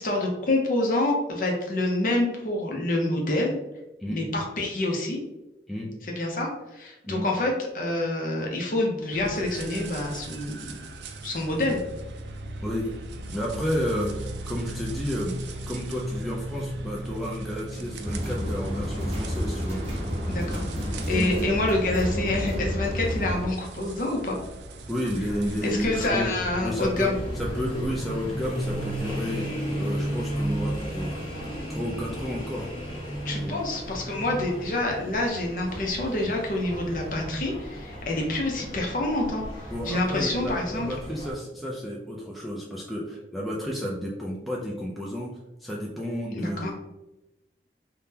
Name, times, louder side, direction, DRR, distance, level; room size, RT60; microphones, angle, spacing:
voice 1, 0.0-3.6 4.1-5.2 6.1-10.7 11.2-11.8 20.3-20.6 20.9-24.4 25.6-27.2 33.2-40.9 46.4-46.7, left 2 dB, 50° left, 0 dB, 0.6 m, -27 dB
sound 1, 9.1-26.8, right 1 dB, 80° right, 0.4 m, -38 dB
voice 2, 12.6-12.9 13.3-19.8 21.1-21.3 24.9-26.3 26.6-31.3 31.7-32.7 33.4-33.6 39.7-45.3 45.6-46.7, equal, ahead, -4 dB, 0.3 m, -31 dB
sound 2, 18.0-23.5, equal, 35° right, 0.6 m, -30 dB
sound 3, 25.3-41.3, equal, 30° left, 1.3 m, -34 dB
3.5 x 2.1 x 2.7 m, 0.96 s
head